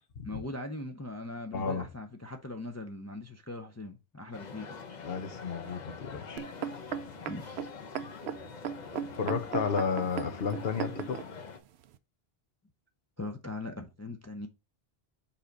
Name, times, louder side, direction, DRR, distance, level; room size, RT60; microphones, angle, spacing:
voice 1, 0.2-4.8 7.2-7.6 13.2-14.5, left 2 dB, 20° left, 0.4 m, -40 dB
voice 2, 1.5-1.9 5.0-6.4 9.2-11.2, left 5 dB, 75° left, 1.1 m, -32 dB
sound 1, 4.3-11.6, left 5 dB, 45° left, 0.9 m, -45 dB
sound 2, 6.4-11.3 11.9-12.0, right 9 dB, 85° right, 0.8 m, -36 dB
5.7 x 4.7 x 3.9 m
omnidirectional pair, 1.0 m